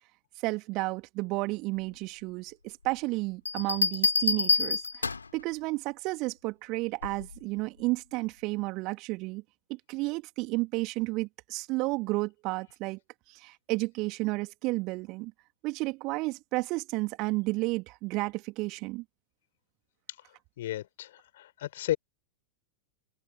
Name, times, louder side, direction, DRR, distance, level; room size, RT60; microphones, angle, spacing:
voice 1, 0.4-9.4 9.7-13.0 13.3-15.3 15.6-19.0, right 23 dB, 40° right, 2.9 m, -32 dB
Bell, 3.5-5.4 7.0-7.4, left 4 dB, 75° left, 4.2 m, -27 dB
voice 2, 20.6-22.0, left 13 dB, 55° left, 6.1 m, -33 dB
open air
figure-of-eight pair, 90°, 0 cm